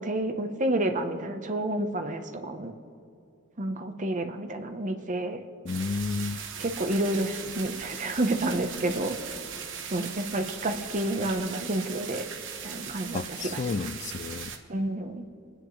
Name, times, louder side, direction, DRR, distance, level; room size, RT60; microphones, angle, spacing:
voice 1, 0.0-2.7 3.6-5.4 6.6-9.2 9.9-12.2 12.6-13.8 14.7-15.2, right 1 dB, 40° right, 6 dB, 1.0 m, -30 dB
voice 2, 5.6-6.4 13.1-14.5, left 4 dB, 35° left, 13 dB, 0.3 m, -31 dB
sound 1, 5.7-14.6, right 7 dB, 65° right, 1.1 m, -39 dB
28.5 x 10.0 x 3.2 m, 2.5 s
head